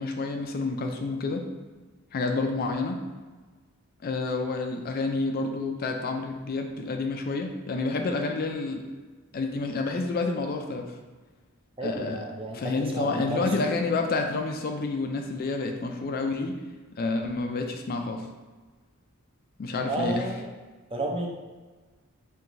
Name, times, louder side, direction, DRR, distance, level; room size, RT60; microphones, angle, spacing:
voice 1, 0.0-1.4 2.1-3.0 4.0-8.9 9.3-10.9 11.8-12.2 12.5-16.6 17.0-18.2 19.6-20.2, left 3 dB, 45° left, 4 dB, 0.4 m, -29 dB
voice 2, 11.8-13.9 19.9-20.5 20.9-21.3, right 1 dB, 25° right, 0 dB, 0.5 m, -32 dB
4.5 x 3.1 x 2.6 m, 1.3 s
head